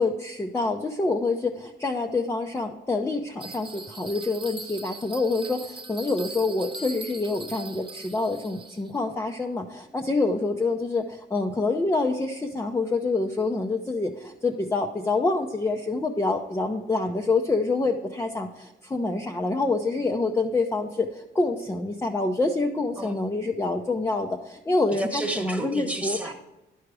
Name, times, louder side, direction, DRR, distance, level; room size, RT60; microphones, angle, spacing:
voice 1, 0.0-25.1 25.5-26.2, left 3 dB, 15° left, 2 dB, 0.6 m, -26 dB
Bell, 3.4-9.0, right 3 dB, 25° right, 0.9 m, -41 dB
voice 2, 24.9-26.3, right 1 dB, 5° right, 3 dB, 1.2 m, -31 dB
11.0 x 4.8 x 4.7 m, 0.97 s
cardioid pair, 90°, 20 cm